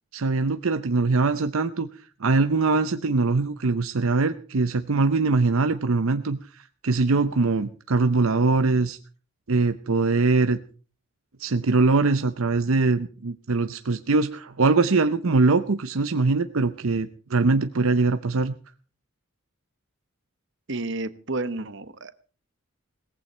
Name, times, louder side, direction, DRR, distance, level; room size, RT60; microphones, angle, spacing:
voice 1, 0.1-9.0 9.5-10.6 11.4-18.5, right 3 dB, 75° right, 9 dB, 0.7 m, -22 dB
voice 2, 20.7-22.2, right 2 dB, 55° right, 13 dB, 1.1 m, -31 dB
18.0 x 15.0 x 4.4 m, 0.38 s
head